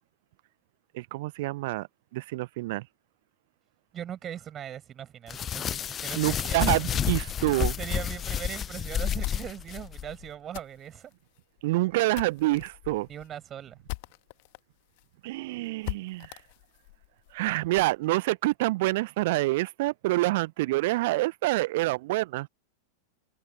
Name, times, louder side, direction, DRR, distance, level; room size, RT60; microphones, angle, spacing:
voice 1, 0.9-1.9 2.1-2.9 6.2-7.8 11.6-13.1 15.2-16.4 17.3-22.5, right 19 dB, 50° right, 0.9 m, -27 dB
voice 2, 3.9-6.8 7.8-11.1 12.0-12.1 13.1-13.8, right 10 dB, 25° right, 6.9 m, -40 dB
sound 1, 5.3-10.0, left 9 dB, 25° left, 0.6 m, -30 dB
sound 2, 8.9-14.6 15.0-15.1 15.3-15.4 15.8-18.0, left 28 dB, 45° left, 1.5 m, -42 dB
figure-of-eight pair, 90°, 0 cm